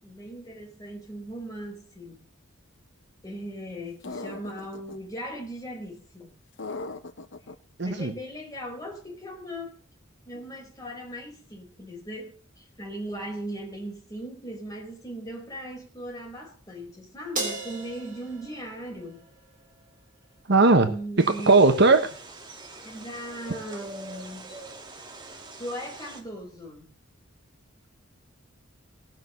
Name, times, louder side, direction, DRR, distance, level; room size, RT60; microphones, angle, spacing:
voice 1, 0.0-2.2 3.2-6.3 7.8-9.7 10.2-19.3 20.7-21.7 22.8-24.5 25.6-26.9, equal, 20° left, 0 dB, 4.9 m, -38 dB
sound 1, 4.0-5.0 6.6-7.5, left 3 dB, 60° left, 0.9 m, -37 dB
voice 2, 7.8-8.1 20.5-20.9 21.5-22.0, right 3 dB, 55° right, 8 dB, 1.2 m, -17 dB
Crash cymbal, 17.4-19.9, right 3 dB, 40° right, 4.8 m, -36 dB
sound 2, 21.2-26.2, right 2 dB, 20° right, 1.7 m, -44 dB
18.0 x 6.3 x 7.0 m, 0.42 s
head